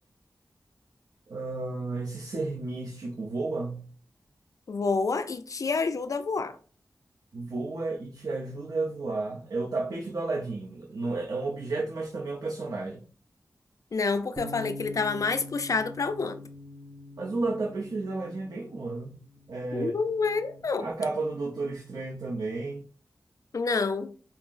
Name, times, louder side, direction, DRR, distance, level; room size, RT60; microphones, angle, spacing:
voice 1, 1.3-3.9 7.3-13.0 17.2-19.2 19.5-19.9 20.8-22.9, right 3 dB, 75° right, 0.6 m, -32 dB
voice 2, 4.7-6.6 13.9-16.4 19.7-20.9 23.5-24.1, left 4 dB, 60° left, 0.4 m, -28 dB
sound 1, 14.4-20.6, left 1 dB, 30° right, 0.9 m, -45 dB
5.6 x 2.0 x 2.5 m
cardioid pair, 55°, 6 cm